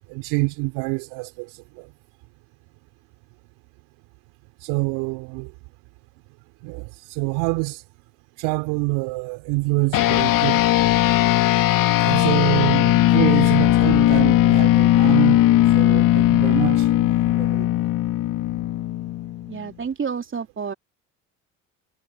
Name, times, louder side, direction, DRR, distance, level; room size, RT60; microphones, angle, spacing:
voice 1, 0.1-1.5 1.8-1.9 4.6-5.5 6.6-7.8 8.4-10.7 12.0-15.4 15.7-17.7, right 28 dB, 70° right, 4.6 m, -26 dB
sound 1, 9.9-19.6, left 14 dB, 55° left, 3.1 m, -18 dB
voice 2, 19.5-20.7, right 6 dB, 30° right, 3.1 m, -29 dB
hypercardioid pair, 65°, 39 cm